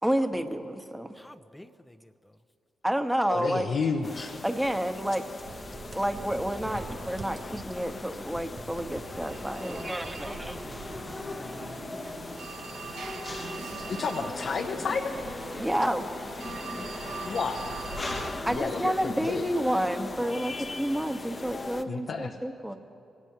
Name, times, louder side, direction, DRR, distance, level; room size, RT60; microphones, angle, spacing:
voice 1, 0.0-1.1 2.8-3.7 4.4-5.2 5.9-10.6 11.9-12.3 15.6-16.0 18.4-22.7, right 1 dB, 10° right, 6 dB, 1.3 m, -30 dB
voice 2, 1.1-2.4 9.6-12.0 15.5-15.7, left 1 dB, 10° left, 11 dB, 0.7 m, -47 dB
voice 3, 3.3-4.3 13.8-15.5 17.3-17.8 18.5-19.5 21.9-22.4, left 5 dB, 65° left, 2 dB, 0.9 m, -31 dB
sound 1, 4.0-21.8, left 3 dB, 35° left, 0.9 m, -39 dB
sound 2, 5.5-11.8, right 4 dB, 50° right, 0.9 m, -46 dB
Telephone, 8.8-18.6, right 5 dB, 75° right, 1.1 m, -42 dB
25.0 x 18.0 x 3.0 m, 2.6 s
supercardioid pair, 55°, 0 cm